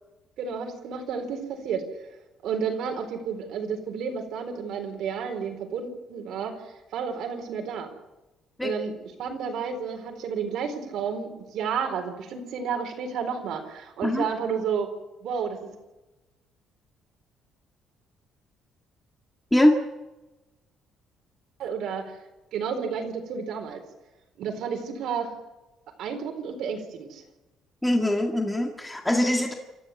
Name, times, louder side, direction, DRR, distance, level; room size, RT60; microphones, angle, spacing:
voice 1, 0.4-1.8 2.4-7.9 8.6-14.9 15.2-15.6 21.6-22.1 22.5-23.8 24.4-25.3 26.0-27.2, right 6 dB, 70° right, 3 dB, 4.2 m, -31 dB
voice 2, 27.8-29.5, left 1 dB, 5° left, 2 dB, 2.0 m, -22 dB
28.0 x 13.5 x 8.4 m, 1.1 s
cardioid pair, 135°, 0 cm